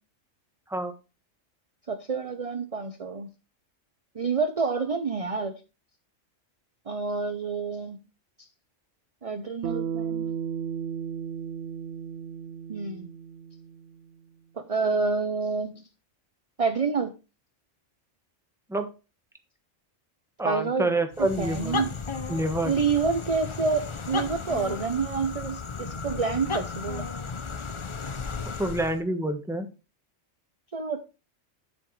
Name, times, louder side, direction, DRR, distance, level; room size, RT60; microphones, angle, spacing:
voice 1, 1.9-3.3 4.1-5.5 6.9-8.0 9.2-10.3 12.7-13.1 14.6-15.8 16.6-17.1 20.4-20.9 21.2-21.9 22.6-27.1 30.7-31.0, right 4 dB, 35° right, 8 dB, 0.7 m, -28 dB
Bass guitar, 9.6-14.1, right 7 dB, 65° right, 0.9 m, -34 dB
voice 2, 20.4-21.8 22.3-22.7 28.6-29.7, right 1 dB, ahead, 6 dB, 1.1 m, -27 dB
sound 1, 21.1-29.0, left 4 dB, 35° left, 0.5 m, -34 dB
9.5 x 7.9 x 3.2 m, 0.30 s
omnidirectional pair, 1.3 m